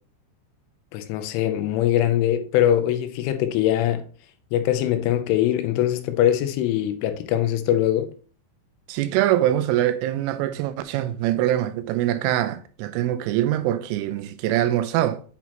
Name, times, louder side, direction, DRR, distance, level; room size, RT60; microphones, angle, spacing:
voice 1, 0.9-4.0 4.5-8.1, left 11 dB, 85° left, 3.2 m, -22 dB
voice 2, 8.9-15.2, right 13 dB, 90° right, 3.2 m, -23 dB
8.2 x 6.0 x 2.9 m
omnidirectional pair, 5.6 m